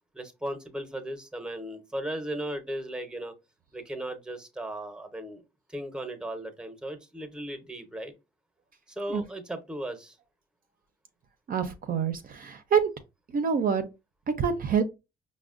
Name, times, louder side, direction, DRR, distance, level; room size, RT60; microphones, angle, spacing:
voice 1, 0.1-3.3 3.7-5.4 5.7-8.1 8.9-10.2, right 1 dB, 5° right, 0.7 m, -36 dB
voice 2, 11.5-12.9 13.3-13.9 14.4-14.8, right 6 dB, 45° right, 0.5 m, -26 dB
4.9 x 2.1 x 2.4 m
cardioid pair, 90°, 20 cm